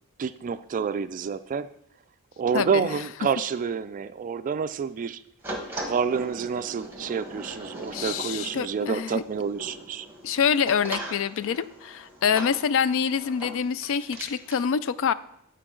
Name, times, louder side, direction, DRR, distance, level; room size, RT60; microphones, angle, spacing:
voice 1, 0.2-1.7 2.4-5.2 5.8-10.1, right 6 dB, 35° right, 13 dB, 0.3 m, -28 dB
voice 2, 2.5-2.9 7.9-9.2 10.2-15.1, left 7 dB, 65° left, 16 dB, 0.4 m, -26 dB
sound 1, 5.4-14.6, right 1 dB, 10° right, 1.4 m, -40 dB
13.5 x 4.5 x 3.8 m, 0.76 s
head